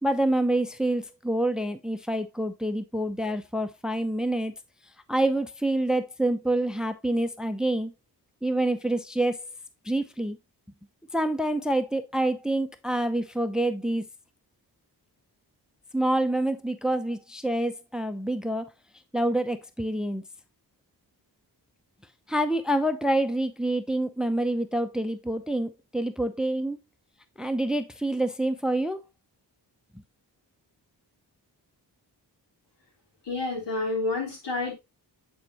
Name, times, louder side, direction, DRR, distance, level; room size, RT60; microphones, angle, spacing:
voice 1, 0.0-4.5 5.1-7.9 8.4-9.5 9.8-10.4 11.1-14.0 15.9-18.6 19.1-20.2 22.3-26.8 27.4-29.0, right 1 dB, ahead, 0.7 m, -27 dB
voice 2, 33.3-34.7, left 3 dB, 80° left, 3.4 m, -29 dB
8.8 x 4.4 x 2.9 m
wide cardioid pair, 70°, 42 cm